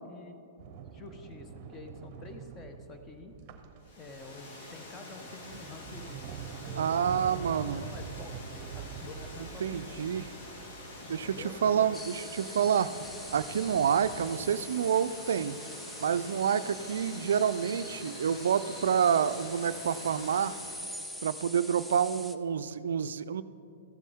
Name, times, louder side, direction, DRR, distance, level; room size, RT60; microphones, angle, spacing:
voice 1, 0.0-0.4 0.8-3.4 4.0-8.3 8.7-10.1 11.0-12.2 13.4-13.5, left 3 dB, 25° left, 6 dB, 1.0 m, -48 dB
Sliding door, 0.6-4.4 5.0-14.6, right 7 dB, 40° right, 0.7 m, -45 dB
Water, 3.8-21.0, left 2 dB, 55° left, 2.0 m, -47 dB
voice 2, 6.8-7.8 9.6-10.2 11.1-12.9 13.3-15.6 16.0-20.6 21.2-23.4, right 8 dB, 75° right, 13 dB, 0.3 m, -28 dB
sound 1, 11.9-22.3, equal, 5° left, 0.5 m, -45 dB
14.5 x 8.3 x 3.6 m, 2.6 s
hypercardioid pair, 120°, 0 cm